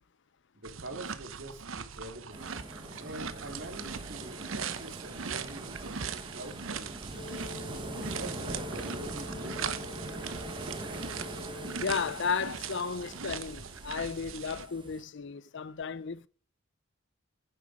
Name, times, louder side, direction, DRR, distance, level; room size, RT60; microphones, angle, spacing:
voice 1, 0.5-2.4 3.0-7.2 8.0-9.8, right 1 dB, 65° right, 3.4 m, -45 dB
sound 1, 0.6-14.7, right 6 dB, 80° right, 1.0 m, -40 dB
sound 2, 2.3-15.0, right 2 dB, 25° right, 1.5 m, -43 dB
Telephone, 7.1-12.3, left 2 dB, 45° left, 3.6 m, -46 dB
voice 2, 11.8-16.3, left 5 dB, 65° left, 0.6 m, -34 dB
10.0 x 7.7 x 5.0 m
head